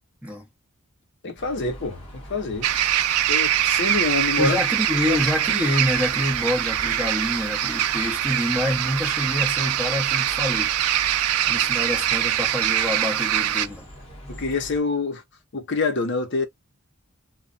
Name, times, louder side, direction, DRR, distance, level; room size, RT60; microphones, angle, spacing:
voice 1, 1.2-2.7 3.3-4.6 5.1-5.2 14.3-15.2 15.5-16.5, left 3 dB, 55° left, 0.7 m, -26 dB
sound 1, 1.4-14.8, equal, 25° left, 1.1 m, -42 dB
sound 2, 2.6-13.7, right 11 dB, 80° right, 0.3 m, -23 dB
voice 2, 4.4-10.7 11.5-13.9, left 1 dB, 5° right, 0.8 m, -26 dB
2.2 x 2.1 x 3.7 m
head